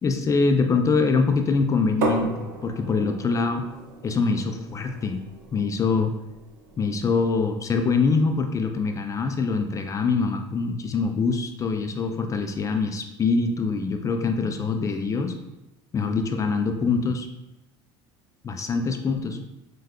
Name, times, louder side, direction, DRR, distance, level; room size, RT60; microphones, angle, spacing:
voice 1, 0.0-3.7 4.0-5.2 5.5-6.1 6.8-15.3 15.9-17.3 18.4-19.4, left 4 dB, 25° left, 5 dB, 0.3 m, -24 dB
sound 1, 2.0-7.7, right 3 dB, 80° right, 0.6 m, -35 dB
4.7 x 2.3 x 2.3 m, 0.96 s
supercardioid pair, 90°, 12 cm